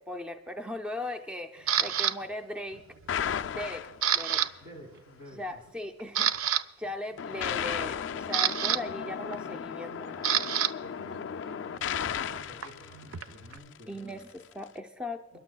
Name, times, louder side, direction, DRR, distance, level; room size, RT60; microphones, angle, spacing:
voice 1, 0.0-2.8 3.5-3.9 4.1-4.4 5.3-10.6 13.9-15.4, left 1 dB, 5° right, 4 dB, 0.5 m, -38 dB
Camera, 1.7-2.1 2.7-3.1 3.4-4.5 4.7-5.0 5.5-5.6 6.0-6.6 7.8-10.7 11.0-13.6, right 9 dB, 85° right, 0.5 m, -29 dB
sound 1, 3.1-4.5 7.2-13.7, left 8 dB, 60° left, 0.3 m, -35 dB
voice 2, 4.6-5.7 10.8-14.2 15.3-15.4, equal, 60° right, 5 dB, 2.0 m, -50 dB
30.0 x 11.0 x 2.3 m, 1.1 s
head